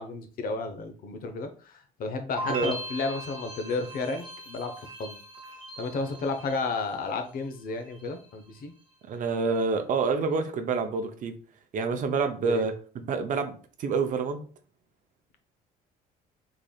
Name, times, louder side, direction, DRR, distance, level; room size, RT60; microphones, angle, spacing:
voice 1, 0.0-5.2 5.8-8.7 12.4-12.7, left 3 dB, 60° left, 0.7 m, -32 dB
sound 1, 2.4-7.4 7.7-8.3, right 1 dB, 25° right, 1.2 m, -40 dB
voice 2, 9.1-11.3 11.7-14.5, right 4 dB, 50° right, 0.6 m, -28 dB
3.8 x 3.3 x 2.3 m
cardioid pair, 110°, 17 cm